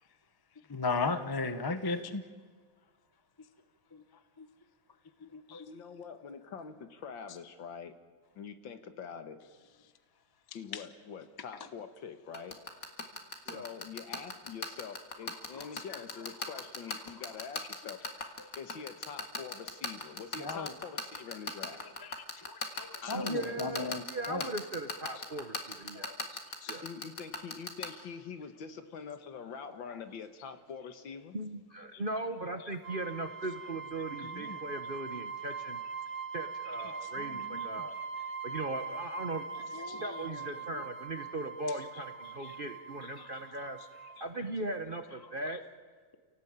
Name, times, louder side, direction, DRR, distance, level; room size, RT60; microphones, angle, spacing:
voice 1, 0.7-2.2 3.9-4.0 4.4-4.5 5.2-5.7 10.7-10.8 15.5-16.0 20.4-20.7 22.0-24.5 25.9-26.2 26.6-26.8 34.2-34.6 37.0-37.7 39.7-40.5 40.8-40.9 42.4-42.6 43.2-43.3, left 3 dB, 20° left, 10 dB, 0.6 m, -37 dB
voice 2, 5.7-8.0 8.4-9.4 10.5-12.6 13.5-18.0 18.6-21.9 23.0-24.0 26.8-31.4, left 6 dB, 70° left, 9 dB, 2.1 m, -45 dB
sound 1, 12.3-27.9, left 4 dB, 45° left, 2.4 m, -35 dB
voice 3, 23.1-26.1 26.7-26.9 31.3-35.8 36.3-37.9 38.4-39.4 40.0-43.8 44.2-45.6, right 2 dB, 35° right, 7 dB, 1.0 m, -38 dB
sound 2, 32.8-44.3, right 5 dB, 80° right, 2.9 m, -42 dB
28.0 x 18.0 x 8.9 m, 1.5 s
omnidirectional pair, 2.2 m